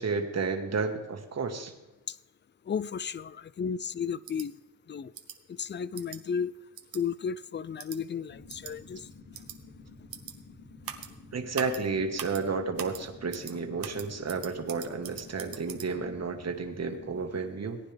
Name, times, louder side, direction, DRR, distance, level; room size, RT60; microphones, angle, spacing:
voice 1, 0.0-1.7 11.3-17.8, right 4 dB, 50° right, 5 dB, 1.6 m, -32 dB
voice 2, 2.7-4.5 4.9-5.1 5.6-6.5 6.9-9.0, left 6 dB, 30° left, 19 dB, 0.5 m, -33 dB
sound 1, 4.3-4.5 5.1-5.4 6.0-6.2 6.8-7.0 7.8-8.0 8.5-8.7 9.3-9.6 10.1-10.3 10.8-11.1 11.5-11.8 12.2-12.4 12.8-13.0 13.3-13.5 13.8-15.9, right 9 dB, 90° right, 1.1 m, -41 dB
sound 2, 8.3-17.3, left 3 dB, 90° left, 3.5 m, -51 dB
18.0 x 9.8 x 3.5 m, 1.0 s
cardioid pair, 80°, 34 cm